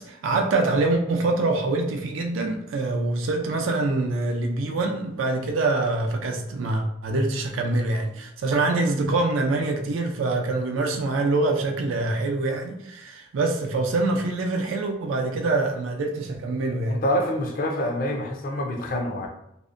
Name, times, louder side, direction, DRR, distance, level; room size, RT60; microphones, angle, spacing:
voice 1, 0.0-17.0, right 2 dB, 85° right, 2 dB, 0.4 m, -25 dB
voice 2, 16.9-19.3, equal, 45° left, 2 dB, 0.4 m, -26 dB
2.6 x 2.0 x 2.4 m, 0.80 s
head